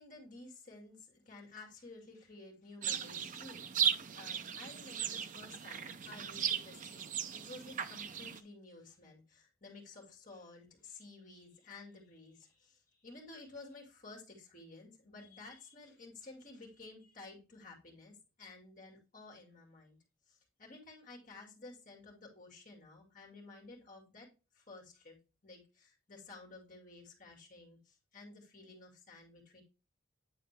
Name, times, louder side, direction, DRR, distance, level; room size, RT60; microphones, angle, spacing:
voice 1, 0.0-20.0 20.3-24.3 24.5-25.2 25.4-29.6, left 3 dB, 40° left, -1 dB, 2.5 m, -53 dB
sound 1, 2.8-8.4, right 8 dB, 40° right, 0.4 m, -37 dB
9.5 x 4.2 x 3.5 m, 0.30 s
head